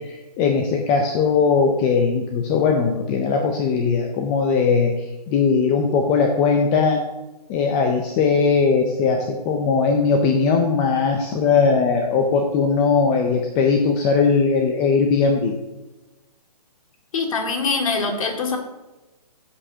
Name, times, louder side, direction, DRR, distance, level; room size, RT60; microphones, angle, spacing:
voice 1, 0.4-7.0 7.5-15.5, left 5 dB, 10° left, 3 dB, 0.4 m, -19 dB
voice 2, 17.1-18.6, left 4 dB, 55° left, 3 dB, 2.0 m, -23 dB
14.0 x 8.0 x 2.7 m, 1.1 s
hypercardioid pair, 155°, 21 cm